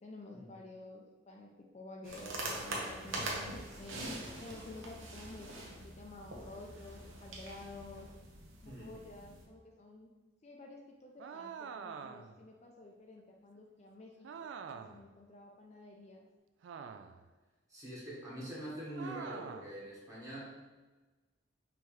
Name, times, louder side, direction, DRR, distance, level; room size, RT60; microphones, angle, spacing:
voice 1, 0.0-8.1 8.6-10.1 10.4-16.2 20.2-20.4, left 2 dB, 35° left, 0 dB, 0.4 m, -51 dB
sound 1, 2.0-9.4, right 1 dB, 90° right, 0.9 m, -43 dB
sound 2, 11.2-12.4 14.2-15.1 16.6-17.3 19.0-19.8, right 6 dB, 65° right, 0.3 m, -45 dB
voice 2, 17.7-20.6, right 1 dB, 15° right, -7 dB, 1.3 m, -44 dB
5.5 x 3.0 x 3.1 m, 1.2 s
head